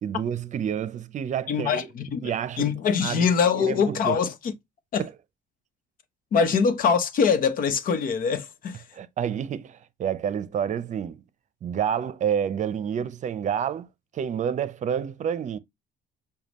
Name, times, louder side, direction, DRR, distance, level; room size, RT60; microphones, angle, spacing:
voice 1, 0.0-1.9 2.2-2.7 3.0-3.3 3.5-4.2 5.0-5.1 8.9-11.2 11.6-13.9 14.1-15.6, right 8 dB, 45° right, 0.7 m, -29 dB
voice 2, 1.5-2.3 2.6-4.3 4.9-5.0 6.3-8.8, left 6 dB, 55° left, 1.0 m, -23 dB
6.9 x 2.4 x 3.0 m
cardioid pair, 110°, 17 cm